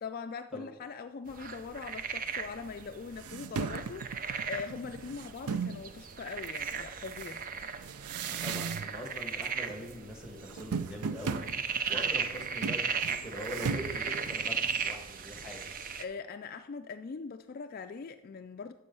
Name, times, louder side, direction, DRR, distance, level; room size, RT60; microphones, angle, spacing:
voice 1, 0.0-7.4 16.0-18.7, left 5 dB, 40° left, 0.3 m, -41 dB
sound 1, 1.3-16.0, right 6 dB, 40° right, 0.5 m, -37 dB
sound 2, 2.7-2.8 3.1-5.8 6.4-9.1 9.4-9.9 10.2-14.9, right 5 dB, 85° right, 0.5 m, -37 dB
voice 2, 8.2-11.4 11.9-15.7, equal, 5° right, 1.6 m, -43 dB
9.9 x 6.8 x 5.5 m
head